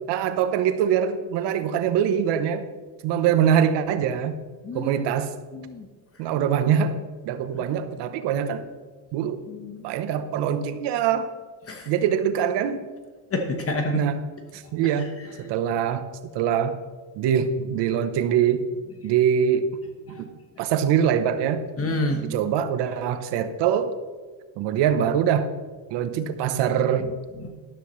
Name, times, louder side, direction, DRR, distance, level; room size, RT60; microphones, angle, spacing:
voice 1, 0.0-2.7 3.0-4.4 4.7-5.3 6.2-7.0 7.2-8.7 9.1-9.4 9.8-11.3 11.9-12.9 13.9-14.3 14.5-16.0 16.3-16.8 17.2-18.7 19.0-19.7 20.2-20.3 20.6-21.6 22.2-23.9 24.6-25.5 25.9-27.1, right 8 dB, 90° right, 11 dB, 1.0 m, -23 dB
voice 2, 5.5-5.9 7.5-7.7 9.5-9.8 11.7-11.9 13.3-14.0 14.8-15.5 20.1-20.2 21.8-22.4 27.3-27.5, left 2 dB, 35° left, 4 dB, 1.2 m, -29 dB
13.0 x 12.0 x 3.2 m, 1.4 s
cardioid pair, 125°, 40 cm